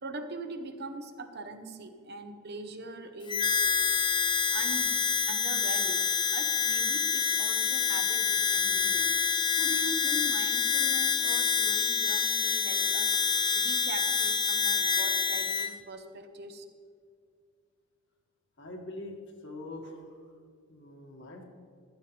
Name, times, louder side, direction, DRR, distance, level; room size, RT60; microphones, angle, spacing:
voice 1, 0.0-3.8 4.5-4.9 5.3-9.2 9.5-16.6, right 2 dB, 50° right, 7 dB, 1.0 m, -42 dB
Harmonica, 3.3-15.7, left 6 dB, 20° left, 0.5 m, -27 dB
voice 2, 18.6-19.2 19.4-20.2 20.7-21.4, left 1 dB, 55° left, 1 dB, 2.0 m, -43 dB
15.0 x 13.0 x 3.4 m, 2.2 s
head